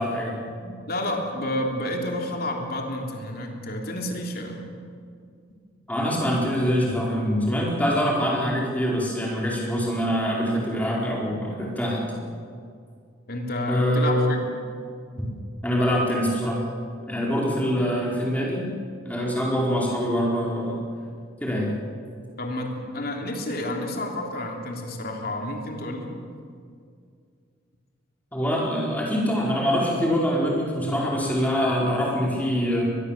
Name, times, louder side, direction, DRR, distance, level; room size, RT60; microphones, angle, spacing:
voice 1, 0.0-0.7 5.9-12.2 13.7-14.4 15.6-16.6 17.0-18.6 19.0-20.8 21.4-21.7 28.3-32.8, equal, 10° left, -3 dB, 4.6 m, -24 dB
voice 2, 0.9-4.7 13.3-14.6 22.4-26.2, left 1 dB, 50° left, 2 dB, 3.3 m, -30 dB
24.0 x 20.5 x 7.4 m, 2.2 s
head